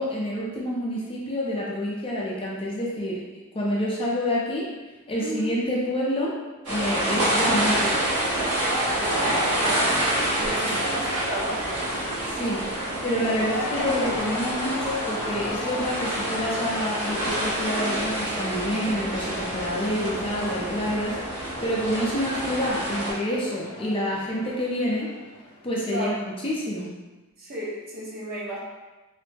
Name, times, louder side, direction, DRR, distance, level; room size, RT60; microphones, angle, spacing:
voice 1, 0.0-3.2 3.5-4.7 5.1-6.4 6.7-8.0 10.7-10.8 12.3-12.6 13.0-25.1 25.6-26.2 26.4-26.9, equal, 25° left, -4 dB, 0.5 m, -28 dB
voice 2, 5.2-5.5 8.7-11.8 13.3-13.5 25.9-26.3 27.4-28.6, right 1 dB, 45° right, -5 dB, 0.8 m, -33 dB
sound 1, 6.6-23.1, right 1 dB, 85° right, 1.2 m, -27 dB
Cheering / Crowd, 9.1-25.8, left 3 dB, 85° left, 0.5 m, -38 dB
3.1 x 2.0 x 3.2 m, 1.1 s
head